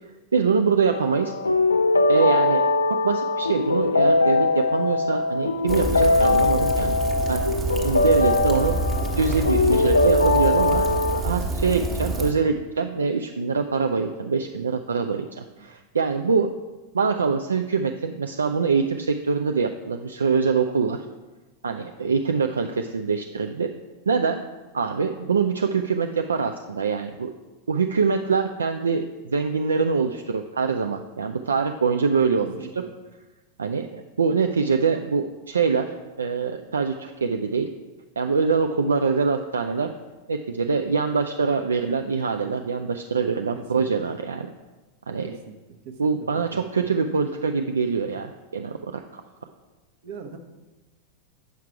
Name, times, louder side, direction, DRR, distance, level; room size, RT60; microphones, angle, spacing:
voice 1, 0.3-1.3 2.1-2.6 2.9-7.0 7.3-7.4 7.8-8.7 9.2-16.5 16.9-21.1 21.6-23.7 24.1-24.4 24.7-27.3 27.7-32.6 33.6-37.7 38.2-39.9 40.3-44.5 45.1-45.3 46.0-49.2, right 5 dB, 70° right, 5 dB, 0.4 m, -24 dB
sound 1, 0.9-11.2, left 2 dB, 75° left, 0.4 m, -21 dB
Rain, 5.7-12.3, right 2 dB, 20° right, 1.1 m, -28 dB
voice 2, 32.4-32.9 43.5-43.8 45.2-45.6 45.8-46.9 50.0-50.4, right 5 dB, 50° right, 6 dB, 0.9 m, -41 dB
8.4 x 5.8 x 4.6 m, 1.2 s
figure-of-eight pair, 90°, 0 cm